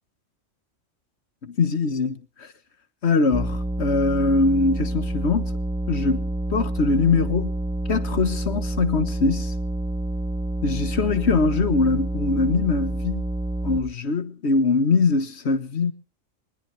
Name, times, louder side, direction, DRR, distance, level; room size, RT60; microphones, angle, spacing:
voice 1, 1.6-2.5 3.0-5.6 5.9-7.5 7.9-9.5 10.6-13.2 13.6-15.9, left 3 dB, 60° left, 1.7 m, -22 dB
sound 1, 3.3-13.8, right 1 dB, 5° right, 1.3 m, -28 dB
22.5 x 19.5 x 3.3 m
omnidirectional pair, 1.3 m